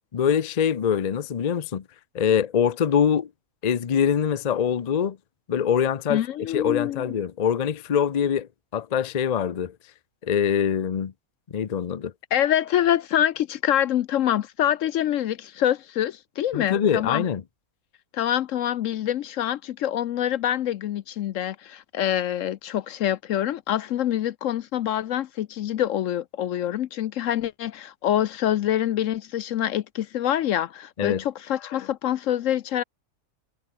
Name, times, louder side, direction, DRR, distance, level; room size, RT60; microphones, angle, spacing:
voice 1, 0.1-1.8 2.1-3.3 3.6-5.2 5.5-6.2 6.5-9.7 10.2-11.1 11.5-12.1 16.5-17.4 31.0-31.2, left 8 dB, 45° left, 0.5 m, -24 dB
voice 2, 6.1-7.1 12.3-17.2 18.1-32.8, left 11 dB, 65° left, 0.9 m, -25 dB
omnidirectional pair, 1.6 m